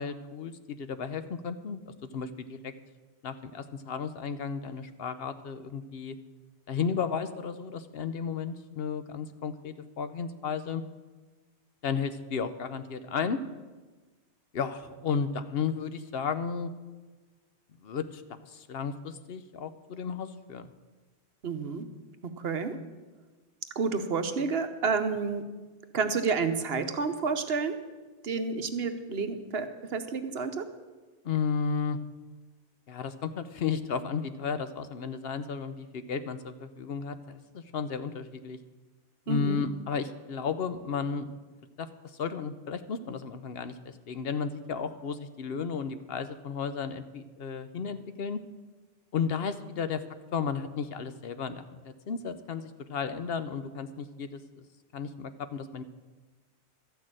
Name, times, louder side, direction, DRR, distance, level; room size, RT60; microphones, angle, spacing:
voice 1, 0.0-2.7 3.2-6.2 6.7-10.8 11.8-13.4 14.5-16.7 17.8-20.7 31.2-32.0 32.9-38.6 39.3-41.3 41.8-48.4 49.1-50.0 50.3-54.6 54.9-55.8, left 6 dB, 65° left, 11 dB, 0.9 m, -33 dB
voice 2, 21.4-21.9 22.4-22.8 23.8-25.4 25.9-27.8 28.2-30.7 39.3-39.7, right 4 dB, 65° right, 8 dB, 1.1 m, -30 dB
13.0 x 6.4 x 8.7 m, 1.3 s
omnidirectional pair, 1.1 m